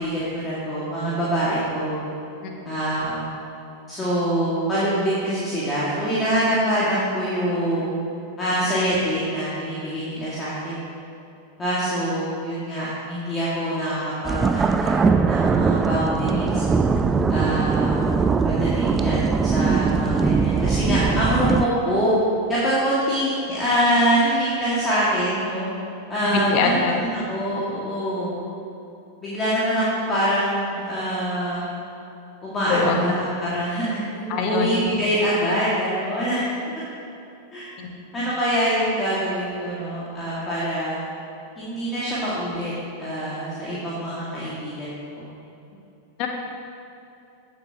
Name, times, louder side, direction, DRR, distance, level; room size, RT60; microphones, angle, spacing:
voice 1, 0.0-2.0 2.7-3.3 3.9-8.0 8.4-10.8 11.6-16.6 17.3-18.1 18.4-22.1 22.5-25.7 26.1-28.4 29.2-31.6 32.4-36.4 37.5-37.7 38.1-41.0 41.6-42.7 43.0-45.3, equal, 20° left, -9 dB, 2.2 m, -25 dB
sound 1, 14.2-21.7, right 5 dB, 15° right, 0.4 m, -21 dB
voice 2, 26.3-27.0 32.7-33.0 34.3-34.7 37.8-37.9 46.2-46.3, left 4 dB, 40° left, 2 dB, 1.4 m, -23 dB
16.5 x 7.2 x 3.0 m, 2.8 s
figure-of-eight pair, 90°, 0 cm